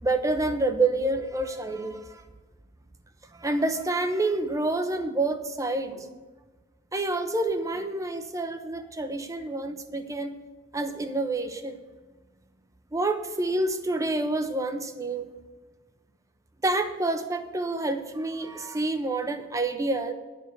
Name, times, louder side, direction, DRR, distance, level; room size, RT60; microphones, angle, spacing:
voice 1, 0.0-2.2 3.3-6.1 6.9-10.3 10.7-11.8 12.9-15.3 16.6-20.1, right 2 dB, 15° right, 8 dB, 0.8 m, -28 dB
10.5 x 5.2 x 7.8 m, 1.3 s
head